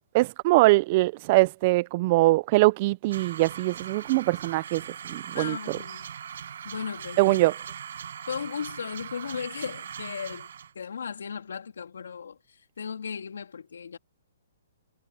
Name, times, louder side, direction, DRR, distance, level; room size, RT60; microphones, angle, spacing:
voice 1, 0.1-4.8 5.1-5.5 7.2-7.5, right 21 dB, 30° right, 0.3 m, -22 dB
sound 1, 3.1-10.7, right 8 dB, 65° right, 6.2 m, -40 dB
voice 2, 5.3-6.1 6.6-7.4 8.3-10.5 10.7-14.0, left 6 dB, 85° left, 3.0 m, -36 dB
hypercardioid pair, 160°, 0 cm